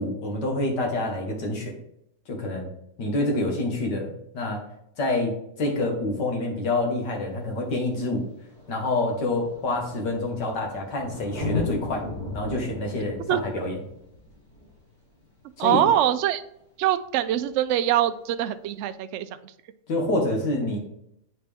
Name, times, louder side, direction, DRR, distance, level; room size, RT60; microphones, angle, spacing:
voice 1, 0.0-1.7 2.3-2.7 3.0-4.6 5.0-8.3 8.7-12.0 12.3-13.8 15.6-15.8 19.9-20.8, left 2 dB, 85° left, 1 dB, 2.2 m, -27 dB
Thunder, 7.0-7.1 8.1-8.2 8.4-15.7 17.4-17.5, left 3 dB, 60° left, 3.0 m, -36 dB
voice 2, 15.6-16.4 16.8-19.3, right 11 dB, 80° right, 10 dB, 0.6 m, -23 dB
8.6 x 4.3 x 3.4 m, 0.76 s
omnidirectional pair, 1.8 m